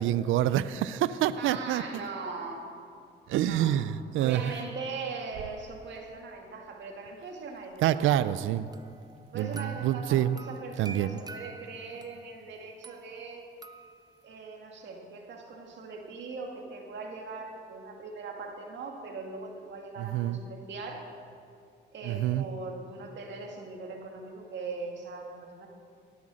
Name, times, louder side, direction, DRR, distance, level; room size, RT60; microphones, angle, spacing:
voice 1, 0.0-1.8 3.3-4.4 7.8-8.7 9.3-10.4 10.8-11.2 20.0-20.4 22.0-22.5, right 12 dB, 80° right, 15 dB, 0.5 m, -27 dB
voice 2, 1.3-2.7 3.3-3.7 4.2-8.2 9.3-13.4 14.2-21.1 21.9-25.7, right 4 dB, 65° right, 1 dB, 2.2 m, -40 dB
sound 1, 8.7-12.3 12.8-14.3, right 3 dB, 20° right, 0.6 m, -48 dB
18.0 x 8.1 x 6.3 m, 2.4 s
cardioid pair, 90°, 20 cm